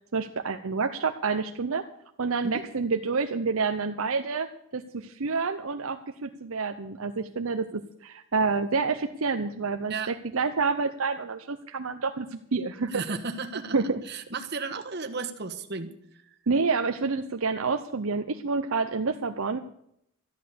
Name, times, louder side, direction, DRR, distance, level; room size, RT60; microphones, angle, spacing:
voice 1, 0.1-1.8 2.2-13.0 13.7-14.0 16.5-19.6, right 4 dB, 70° right, 6 dB, 0.7 m, -28 dB
voice 2, 12.9-13.8 14.0-15.9, right 4 dB, 50° right, 6 dB, 1.4 m, -34 dB
13.0 x 11.0 x 6.9 m, 0.74 s
head